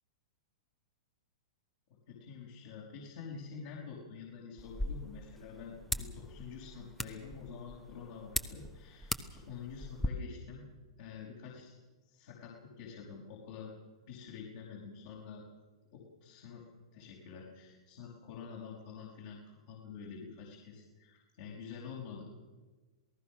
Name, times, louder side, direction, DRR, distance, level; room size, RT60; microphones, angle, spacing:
voice 1, 2.1-10.6 11.0-11.8 12.1-13.7 14.1-15.4 15.9-16.7 16.9-22.2, left 6 dB, 60° left, -4 dB, 5.5 m, -47 dB
sound 1, 4.6-10.1, left 1 dB, 5° left, 1.2 m, -40 dB
27.5 x 18.0 x 6.3 m, 1.3 s
hypercardioid pair, 125°, 3 cm